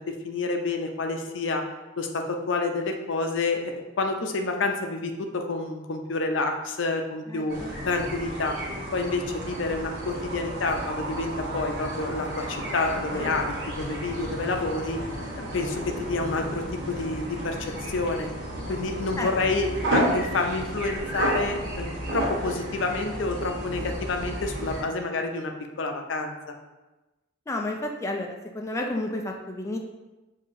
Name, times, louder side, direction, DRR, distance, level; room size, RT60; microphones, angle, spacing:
voice 1, 0.0-1.6 2.0-7.6 7.9-8.6 8.9-15.0 15.4-18.3 18.7-26.5, left 3 dB, 80° left, 4 dB, 0.5 m, -29 dB
voice 2, 7.3-7.7 19.2-19.4 27.5-29.8, left 1 dB, 15° left, 1 dB, 0.3 m, -31 dB
sound 1, 7.5-24.8, right 1 dB, 60° right, 1.2 m, -32 dB
6.6 x 2.7 x 2.6 m, 1.1 s
head